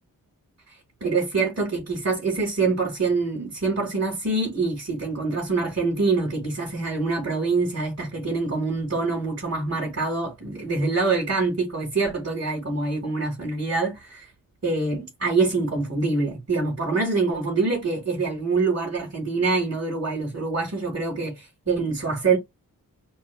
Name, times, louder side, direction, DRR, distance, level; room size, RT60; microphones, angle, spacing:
voice 1, 1.0-14.3 14.6-22.4, right 3 dB, 45° right, 3.1 m, -25 dB
5.4 x 2.5 x 2.4 m
cardioid pair, 65°, 34 cm